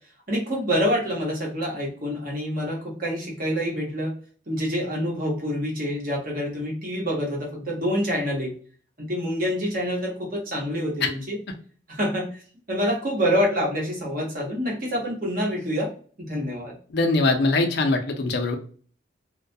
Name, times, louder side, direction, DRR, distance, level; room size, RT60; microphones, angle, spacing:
voice 1, 0.3-4.1 4.5-8.5 9.0-11.4 11.9-12.4 12.7-15.9 16.2-16.7, equal, 45° right, -2 dB, 0.9 m, -26 dB
voice 2, 16.9-18.6, left 3 dB, 55° left, 5 dB, 0.4 m, -22 dB
2.2 x 2.1 x 2.6 m, 0.43 s
head